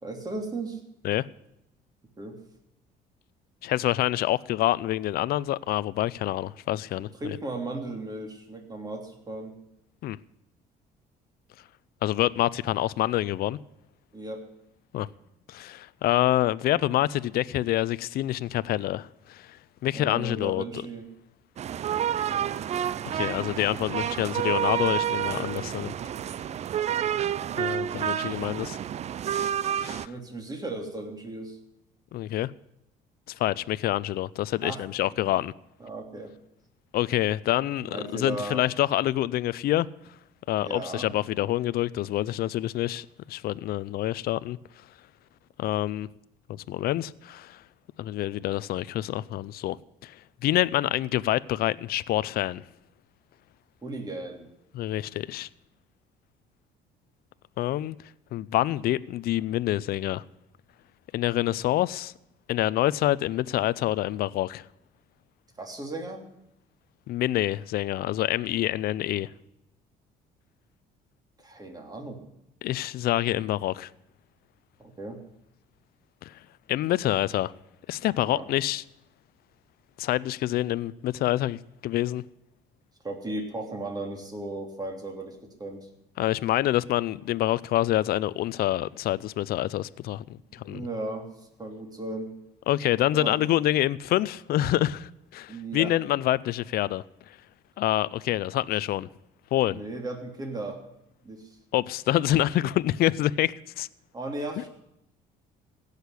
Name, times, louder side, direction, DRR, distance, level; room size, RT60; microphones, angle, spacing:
voice 1, 0.0-0.8 2.2-2.4 7.0-9.6 14.1-14.4 19.9-21.1 27.9-28.4 30.0-31.6 34.6-34.8 35.2-35.3 35.8-36.3 37.9-38.7 40.6-41.1 53.8-54.5 65.6-66.3 71.4-72.3 74.8-75.2 78.3-78.5 83.0-85.9 90.5-92.3 93.1-93.4 95.5-96.0 99.7-100.9 101.2-101.6 104.1-104.7, right 2 dB, 20° right, 3.1 m, -36 dB
voice 2, 3.6-7.4 10.0-10.2 12.0-13.6 14.9-15.1 15.5-19.6 19.8-20.6 23.0-25.9 27.6-28.8 29.4-29.5 29.8-30.1 32.1-32.5 33.3-35.5 36.9-39.9 40.5-44.6 45.6-46.1 46.5-47.6 48.0-49.8 50.0-50.1 50.4-52.6 54.7-55.5 57.6-58.0 58.3-60.2 61.1-62.1 62.5-64.6 67.1-69.3 72.6-73.9 76.2-76.4 76.7-77.5 77.9-78.8 80.0-82.2 86.2-90.9 92.7-97.0 97.8-99.1 99.5-99.8 101.7-103.9 104.6-104.7, left 14 dB, 65° left, 0.5 m, -27 dB
sound 1, 21.6-30.1, right 9 dB, 40° right, 0.4 m, -29 dB
16.5 x 6.6 x 9.8 m
cardioid pair, 110°, 17 cm